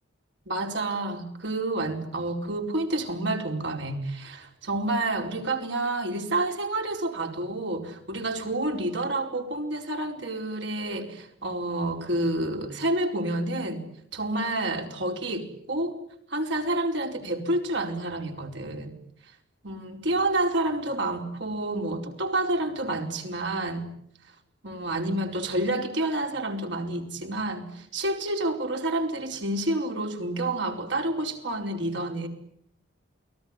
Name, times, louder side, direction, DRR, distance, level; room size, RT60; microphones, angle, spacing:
voice 1, 0.5-13.8 14.1-16.0 16.3-18.9 19.6-23.9 24.6-32.3, right 2 dB, 65° right, 4 dB, 4.8 m, -29 dB
29.0 x 20.5 x 9.8 m, 0.70 s
head